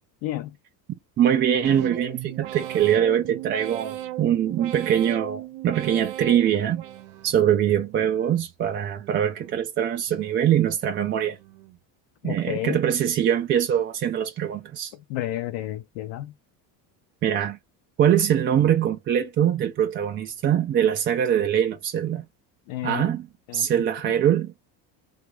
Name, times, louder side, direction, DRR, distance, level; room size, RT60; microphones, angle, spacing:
voice 1, 0.2-0.5 12.2-12.8 15.1-16.3 22.7-23.0 23.5-23.7, left 14 dB, 70° left, 0.6 m, -31 dB
voice 2, 1.2-6.8 7.2-11.4 12.2-14.9 17.2-17.6 18.0-22.3 22.8-23.3 23.5-24.5, right 9 dB, 30° right, 0.3 m, -23 dB
sound 1, 1.6-7.5 7.9-8.5 9.0-9.6 10.1-10.7 11.2-11.8 12.3-12.8, right 13 dB, 80° right, 0.7 m, -38 dB
2.9 x 2.4 x 3.0 m
supercardioid pair, 95°, 50 cm